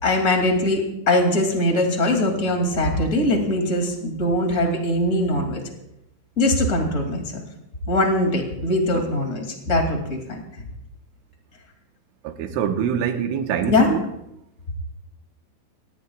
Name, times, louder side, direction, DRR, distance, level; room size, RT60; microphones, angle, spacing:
voice 1, 0.0-5.6 6.4-7.4 7.9-10.4 13.7-14.0, left 1 dB, 30° left, 1.5 m, -21 dB
voice 2, 12.2-14.0, right 8 dB, 90° right, 3.5 m, -25 dB
26.5 x 18.5 x 2.4 m
omnidirectional pair, 5.5 m